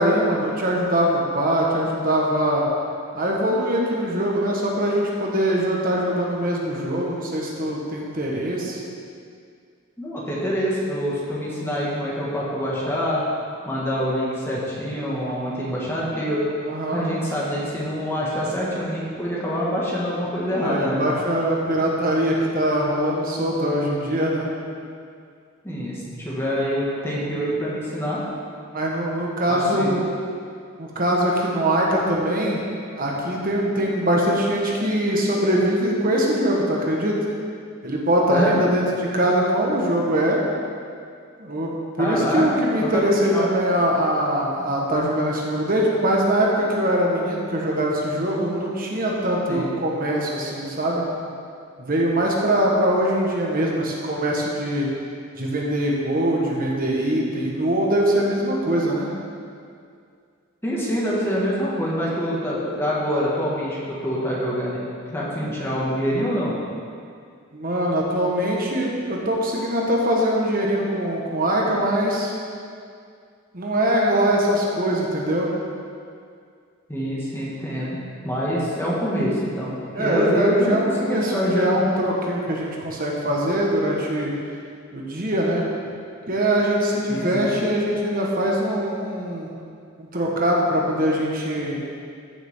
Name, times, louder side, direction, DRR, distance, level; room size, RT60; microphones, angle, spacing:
voice 1, 0.0-2.7 3.1-8.8 16.6-17.1 20.6-24.5 28.7-30.0 30.8-32.6 32.9-37.2 37.8-40.4 41.4-51.0 51.8-54.9 55.4-59.1 67.5-72.3 73.5-75.5 79.9-84.3 84.9-85.6 86.3-89.5 90.0-91.8, right 1 dB, 45° right, -2 dB, 1.6 m, -22 dB
voice 2, 10.0-13.2 13.6-16.4 16.9-21.0 25.6-28.2 29.5-30.0 38.3-38.6 42.0-42.4 42.8-43.0 43.3-43.5 49.5-49.7 60.6-66.5 76.9-78.0 78.2-81.8 87.1-87.5, equal, 10° left, -7 dB, 2.1 m, -25 dB
14.5 x 7.2 x 3.9 m, 2.3 s
head